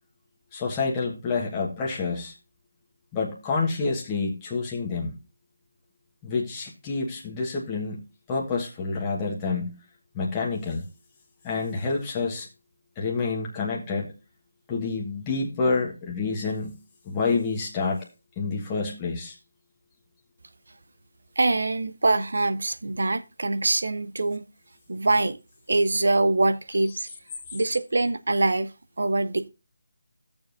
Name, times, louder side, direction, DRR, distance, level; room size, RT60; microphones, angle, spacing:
voice 1, 0.5-2.3 3.1-5.2 6.2-8.0 8.3-9.8 10.1-10.8 11.4-12.5 13.0-14.1 14.7-16.8 17.0-18.1 18.4-19.4, left 4 dB, 15° left, 1.3 m, -28 dB
voice 2, 21.4-24.4 24.9-25.4 25.7-27.1 27.5-28.7 29.0-29.5, right 2 dB, 70° right, 0.7 m, -24 dB
13.5 x 7.0 x 2.6 m
figure-of-eight pair, 165°, 0 cm